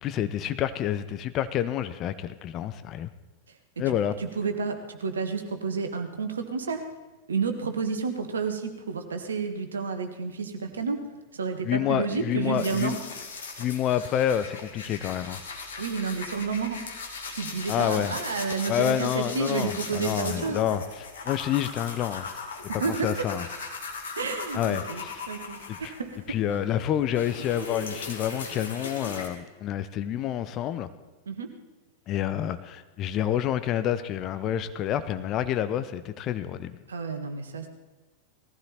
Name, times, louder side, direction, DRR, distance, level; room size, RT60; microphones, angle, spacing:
voice 1, 0.0-3.1 3.8-4.2 11.6-13.0 13.6-15.4 17.7-18.2 18.7-22.3 22.8-23.5 24.5-25.1 25.7-25.8 26.3-30.9 32.1-36.8, left 10 dB, 35° left, 11 dB, 0.9 m, -28 dB
voice 2, 3.8-6.8 7.3-11.0 11.3-13.0 15.8-16.8 17.3-20.6 22.8-23.3 24.2-26.2 31.3-31.5 36.9-37.7, right 5 dB, 70° right, 7 dB, 1.6 m, -30 dB
sound 1, 12.6-26.3 26.7-29.3, left 4 dB, 65° left, 2.4 m, -38 dB
19.0 x 15.0 x 4.3 m, 1.2 s
figure-of-eight pair, 90°, 0 cm